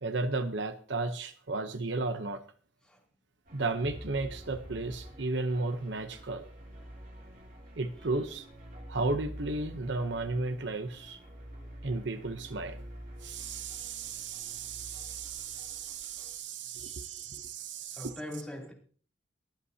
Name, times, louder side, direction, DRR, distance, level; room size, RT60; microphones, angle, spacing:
voice 1, 0.0-2.4 3.5-6.4 7.8-8.5 8.9-11.2 11.8-12.8 13.2-18.1, right 3 dB, 70° right, 0.9 m, -34 dB
sound 1, 3.4-16.3, equal, 45° right, 3.4 m, -48 dB
voice 2, 16.7-17.5 17.8-18.7, left 1 dB, 5° left, 3.2 m, -44 dB
23.5 x 8.3 x 2.9 m
head